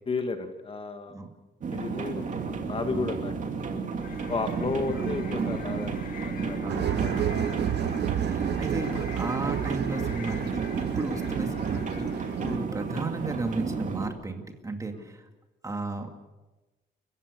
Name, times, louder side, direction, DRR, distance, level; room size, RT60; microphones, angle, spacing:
voice 1, 0.1-1.2 1.7-3.3 3.7-3.8 4.3-7.2 12.4-12.6 14.9-15.1, left 4 dB, 30° left, 7 dB, 1.7 m, -33 dB
sound 1, 1.6-14.1, right 5 dB, 45° right, 2.7 m, -32 dB
voice 2, 2.8-3.2 4.9-5.0 6.6-7.5 7.9-15.2 15.6-16.2, right 2 dB, 15° right, 5 dB, 2.4 m, -35 dB
sound 2, 4.0-12.5, left 7 dB, 50° left, 2.2 m, -46 dB
sound 3, 6.7-12.6, right 11 dB, 65° right, 0.9 m, -32 dB
29.5 x 15.5 x 6.7 m, 1.1 s
cardioid pair, 145°, 18 cm